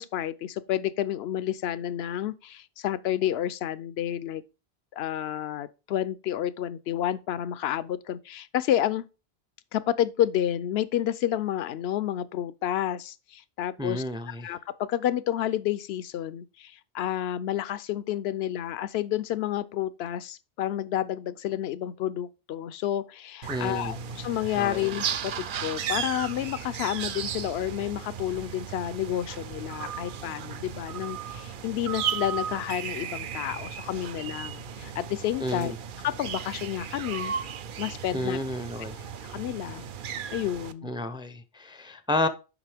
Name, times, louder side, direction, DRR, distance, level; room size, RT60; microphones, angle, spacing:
voice 1, 0.0-4.4 4.9-9.1 9.7-35.7 36.0-37.3 37.8-38.4 39.3-39.9 40.3-40.9, left 11 dB, 75° left, 0.8 m, -30 dB
voice 2, 13.8-14.5 23.5-24.0 24.6-24.8 35.4-35.8 38.1-39.0 40.8-42.3, left 1 dB, 5° right, 0.4 m, -31 dB
sound 1, 23.4-40.7, right 7 dB, 60° right, 0.7 m, -35 dB
7.3 x 5.4 x 3.4 m
omnidirectional pair, 1.1 m